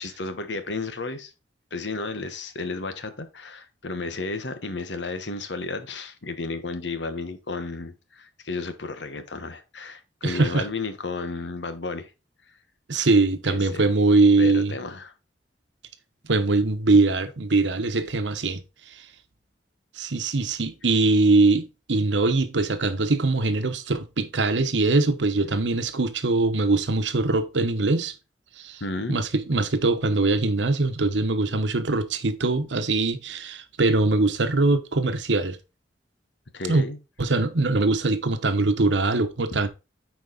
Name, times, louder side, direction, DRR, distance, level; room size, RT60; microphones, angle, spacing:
voice 1, 0.0-1.3 1.7-12.1 13.5-13.9 14.4-15.1 28.8-29.2 36.5-37.0 39.5-39.6, left 3 dB, 85° left, 1.2 m, -33 dB
voice 2, 10.2-10.7 12.9-14.7 16.2-18.6 20.0-21.6 21.9-28.1 28.6-28.8 29.1-35.6 36.7-36.8 37.2-39.7, right 3 dB, 90° right, 1.0 m, -22 dB
8.7 x 4.7 x 3.9 m
head